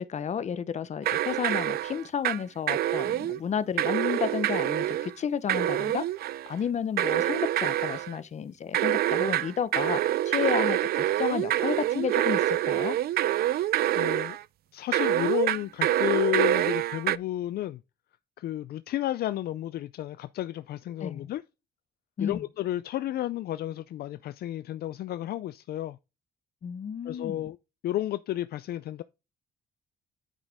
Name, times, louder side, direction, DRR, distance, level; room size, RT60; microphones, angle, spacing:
voice 1, 0.0-6.0 6.5-10.0 10.3-13.0 21.0-21.3 22.2-22.4 26.6-27.4, left 7 dB, 40° left, 0.9 m, -32 dB
sound 1, 1.0-2.4 2.7-3.4 3.8-5.1 5.5-6.5 7.0-8.1 8.7-14.4 14.9-17.2, right 13 dB, 65° right, 0.4 m, -26 dB
voice 2, 14.0-14.4 14.7-17.8 18.4-21.4 22.2-26.0 27.0-27.6 27.8-29.0, left 14 dB, 65° left, 0.4 m, -32 dB
9.2 x 6.5 x 3.5 m
cardioid pair, 120°, 17 cm